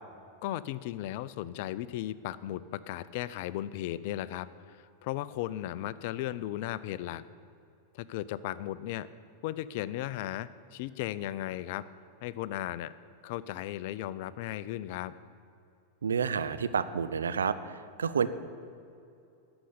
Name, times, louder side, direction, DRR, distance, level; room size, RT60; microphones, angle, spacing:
voice 1, 0.4-7.2 7.9-9.1 9.4-11.8 12.2-12.9 13.2-15.1, left 13 dB, 60° left, 16 dB, 0.5 m, -36 dB
voice 2, 16.0-18.3, right 6 dB, 85° right, 12 dB, 0.6 m, -30 dB
11.5 x 7.1 x 9.6 m, 2.6 s
hypercardioid pair, 95°, 0 cm